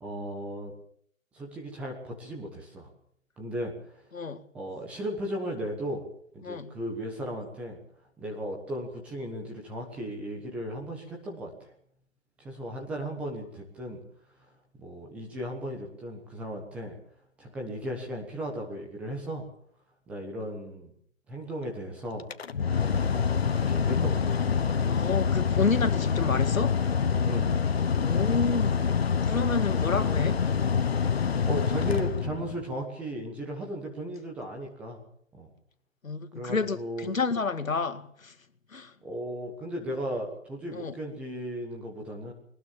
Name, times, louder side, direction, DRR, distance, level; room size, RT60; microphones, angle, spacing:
voice 1, 0.0-0.7 1.3-2.9 3.4-4.0 4.5-6.0 6.3-7.8 8.2-11.7 12.4-14.0 14.4-14.5 14.8-17.0 17.4-19.5 20.1-20.9 21.3-22.3 22.7-24.4 27.2-27.5 31.5-35.0 35.3-35.5 36.3-37.1 39.0-42.3, equal, 5° right, 1.2 m, -36 dB
Mechanical fan, 22.2-32.7, left 6 dB, 50° left, 1.2 m, -26 dB
voice 2, 24.9-26.8 28.0-28.9 29.2-30.4 36.0-38.3 38.7-38.9 40.7-40.9, left 4 dB, 90° left, 2.3 m, -29 dB
22.0 x 19.5 x 7.4 m
hypercardioid pair, 165°, 39 cm